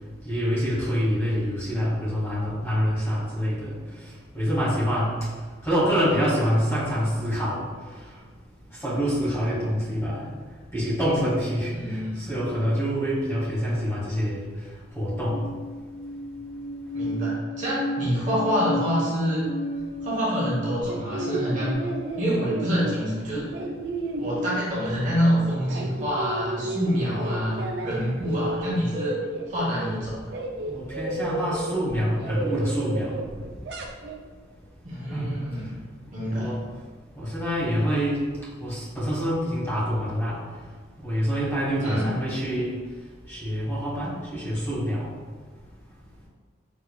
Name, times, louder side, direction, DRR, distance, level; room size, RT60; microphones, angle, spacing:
voice 1, 0.2-3.7 4.3-5.2 5.6-7.7 8.8-10.2 10.7-14.5 14.9-15.3 27.0-27.6 27.9-28.2 30.7-33.2 35.1-35.3 36.3-36.6 37.2-38.2 38.6-40.3 41.0-42.8 43.3-45.1, equal, 15° left, -9 dB, 1.1 m, -26 dB
voice 2, 11.7-12.3 16.9-19.5 20.0-21.8 22.2-23.5 24.2-29.2 29.5-30.3 34.8-35.8 36.1-36.5 41.8-42.1, equal, 40° right, -7 dB, 1.0 m, -26 dB
sound 1, 15.3-21.7, equal, 35° left, 0.3 m, -33 dB
sound 2, 20.8-25.2 25.5-28.0 28.2-34.2, right 1 dB, 65° right, 0.4 m, -33 dB
4.5 x 2.8 x 2.2 m, 1.5 s
head